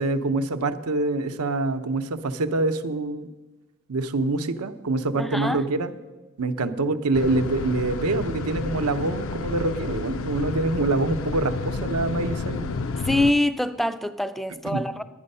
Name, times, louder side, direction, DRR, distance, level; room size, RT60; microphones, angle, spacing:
voice 1, 0.0-3.3 3.9-5.9 6.4-12.7 14.6-14.8, right 2 dB, 85° right, 10 dB, 0.7 m, -25 dB
voice 2, 5.2-5.6 13.0-15.0, left 1 dB, ahead, 10 dB, 0.3 m, -24 dB
sound 1, 7.1-13.3, left 3 dB, 60° left, 0.5 m, -30 dB
11.0 x 9.6 x 5.4 m, 1.2 s
head